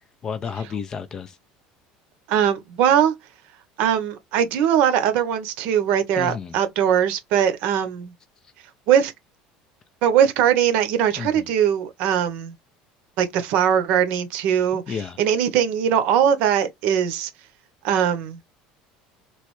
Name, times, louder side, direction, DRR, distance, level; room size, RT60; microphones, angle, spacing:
voice 1, 0.2-1.4 6.2-6.6 11.2-11.5 14.9-15.2, left 6 dB, 20° left, 0.4 m, -31 dB
voice 2, 2.3-3.1 3.8-8.1 8.9-9.1 10.0-12.5 13.2-17.3 17.8-18.4, right 9 dB, 55° right, 0.7 m, -21 dB
3.2 x 2.9 x 3.0 m
cardioid pair, 175°, 3 cm